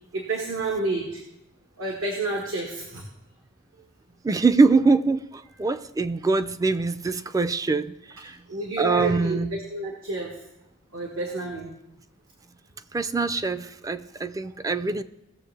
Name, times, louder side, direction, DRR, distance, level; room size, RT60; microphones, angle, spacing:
voice 1, 0.1-1.2 1.8-3.0 8.5-10.3 10.9-11.7, right 3 dB, 80° right, 0 dB, 1.6 m, -29 dB
voice 2, 4.2-8.4 8.8-9.6 12.9-15.0, right 3 dB, 15° right, 12 dB, 0.4 m, -23 dB
18.0 x 7.0 x 3.3 m, 0.88 s
head